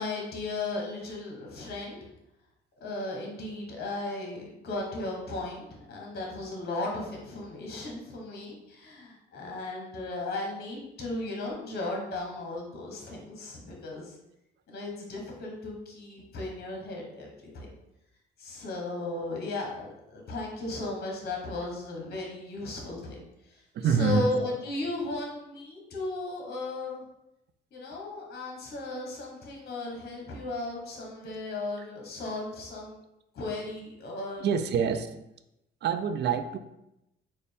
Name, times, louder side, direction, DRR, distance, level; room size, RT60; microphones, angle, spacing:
voice 1, 0.0-2.1 2.8-14.1 14.7-17.7 18.4-23.2 23.4-27.0 27.7-33.0 33.3-34.5, left 2 dB, 55° left, -1 dB, 1.0 m, -36 dB
voice 2, 23.7-24.3 34.4-35.1 35.8-36.6, right 6 dB, 60° right, 10 dB, 0.4 m, -26 dB
4.1 x 2.2 x 3.4 m, 0.87 s
cardioid pair, 90°, 20 cm